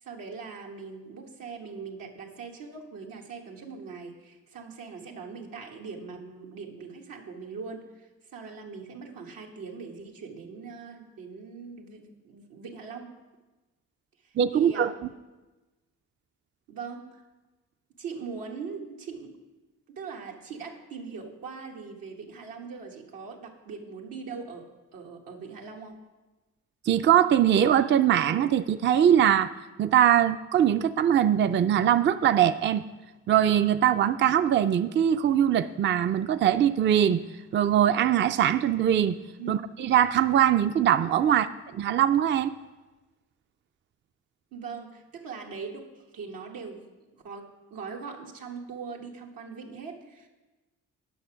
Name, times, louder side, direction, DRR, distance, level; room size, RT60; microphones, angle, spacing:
voice 1, 0.0-13.1 14.2-15.0 16.7-17.1 18.0-19.4 19.9-24.7 24.9-26.1 39.4-39.6 41.3-41.5 44.5-46.8 47.1-50.3, right 5 dB, 85° right, 0 dB, 1.3 m, -41 dB
voice 2, 14.4-14.9 26.9-29.5 29.8-32.8 33.3-37.2 37.5-39.2 39.5-41.5 41.8-42.5, right 10 dB, 35° right, 11 dB, 0.4 m, -22 dB
9.3 x 6.0 x 5.7 m, 1.2 s
cardioid pair, 65°, 33 cm